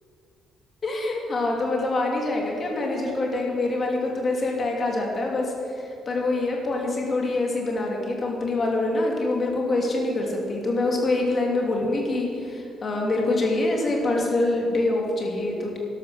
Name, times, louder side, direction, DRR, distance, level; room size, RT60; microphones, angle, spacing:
voice 1, 0.8-15.8, left 2 dB, 30° left, -1 dB, 2.9 m, -25 dB
12.5 x 12.0 x 6.5 m, 2.5 s
cardioid pair, 150°, 0 cm